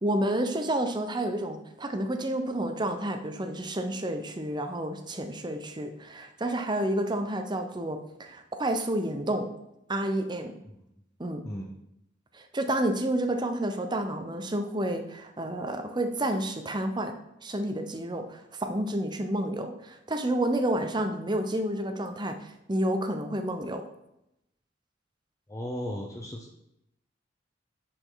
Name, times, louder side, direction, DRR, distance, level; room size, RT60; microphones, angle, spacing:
voice 1, 0.0-9.5 9.9-10.5 11.2-11.4 12.3-17.1 17.4-23.8, right 1 dB, 25° right, 7 dB, 0.8 m, -30 dB
voice 2, 25.5-26.6, equal, 15° left, 0 dB, 0.6 m, -36 dB
10.0 x 5.2 x 3.9 m, 0.84 s
head